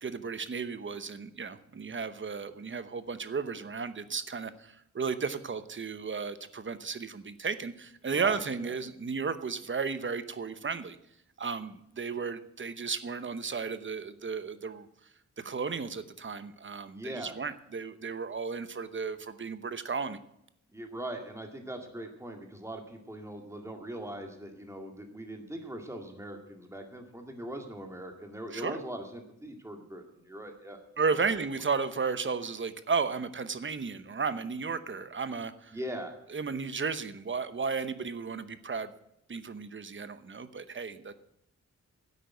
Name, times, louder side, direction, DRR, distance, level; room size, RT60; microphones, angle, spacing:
voice 1, 0.0-11.0 11.4-14.9 15.4-20.2 28.5-28.8 31.0-35.8 36.3-38.9 39.3-41.1, right 5 dB, 40° right, 12 dB, 0.9 m, -34 dB
voice 2, 8.1-8.7 16.9-17.4 20.7-30.8 35.7-36.1, right 1 dB, 10° right, 3 dB, 2.1 m, -41 dB
10.5 x 8.4 x 9.4 m, 0.79 s
wide cardioid pair, 135°, 29 cm